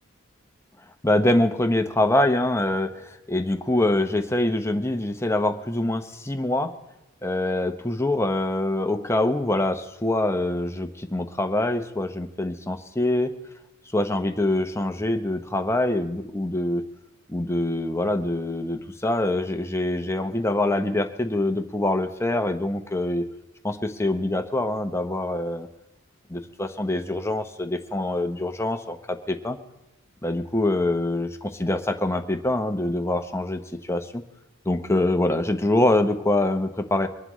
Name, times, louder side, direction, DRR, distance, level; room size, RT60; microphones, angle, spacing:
voice 1, 1.0-2.9 3.3-6.7 7.2-13.3 13.9-16.8 17.3-23.2 23.6-25.7 26.3-29.6 30.2-34.2 34.7-37.1, left 1 dB, 15° left, 7 dB, 0.8 m, -24 dB
24.5 x 11.5 x 3.1 m, 0.99 s
head